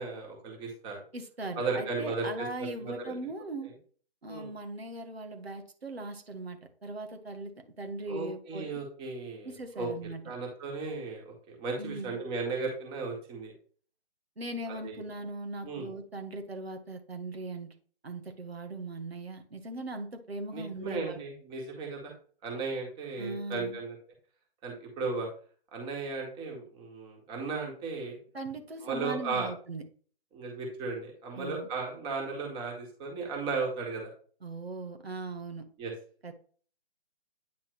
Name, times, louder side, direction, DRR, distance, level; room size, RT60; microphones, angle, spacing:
voice 1, 0.0-1.0 1.6-3.1 4.3-4.5 8.1-9.9 10.3-13.5 14.8-15.0 15.6-15.9 20.5-22.1 22.4-24.0 24.6-25.3 25.7-28.2 28.8-29.5 30.3-34.1 35.8-35.9, right 4 dB, 15° right, 0 dB, 1.8 m, -35 dB
voice 2, 1.1-3.7 4.2-7.5 7.8-8.6 9.4-10.2 11.8-12.2 14.4-17.7 18.0-21.2 23.2-23.8 28.3-29.8 31.4-31.7 34.4-35.7 36.2-36.3, right 2 dB, 80° right, 5 dB, 1.6 m, -39 dB
9.4 x 4.1 x 3.3 m, 0.44 s
figure-of-eight pair, 145°, 30 cm